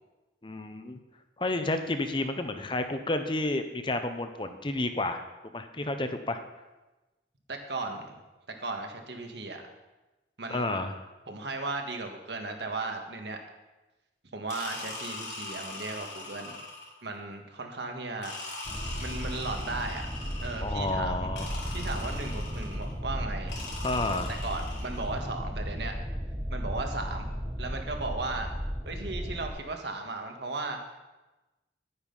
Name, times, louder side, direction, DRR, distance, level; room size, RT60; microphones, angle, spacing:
voice 1, 0.4-1.0 1.4-5.2 5.5-6.4 10.5-11.1 20.6-21.8 23.8-24.4, left 2 dB, 25° left, 8 dB, 0.8 m, -31 dB
voice 2, 7.5-8.1 8.6-9.6 10.4-10.8 11.3-13.4 14.3-16.6 17.0-18.3 19.0-20.0 20.4-21.3 21.7-23.6 24.4-25.9 26.5-27.3 27.6-28.5 28.9-30.8, right 3 dB, 75° right, 4 dB, 1.7 m, -36 dB
sound 1, 14.5-17.1 18.2-20.8 21.4-22.9 23.5-25.1, left 2 dB, 75° left, 3.5 m, -41 dB
sound 2, 18.6-29.5, equal, 5° right, 1.5 m, -35 dB
11.0 x 9.7 x 5.5 m, 1.1 s
head